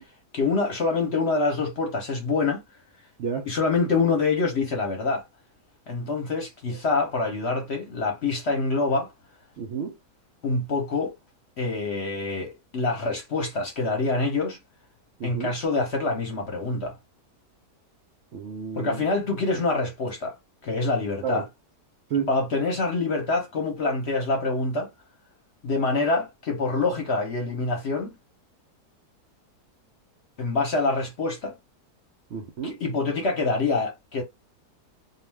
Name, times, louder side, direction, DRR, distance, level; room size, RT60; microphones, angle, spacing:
voice 1, 0.3-2.6 3.4-5.2 5.9-9.1 10.4-11.1 11.6-14.6 15.2-17.0 18.7-20.4 20.6-21.5 22.3-24.9 25.6-28.1 30.4-31.5 32.6-34.2, left 3 dB, 50° left, 0.9 m, -26 dB
voice 2, 9.6-9.9 15.2-15.5 18.3-19.0 21.2-21.4 22.1-22.3 32.3-32.8, right 6 dB, 65° right, 0.7 m, -30 dB
2.4 x 2.4 x 3.3 m
omnidirectional pair, 1.7 m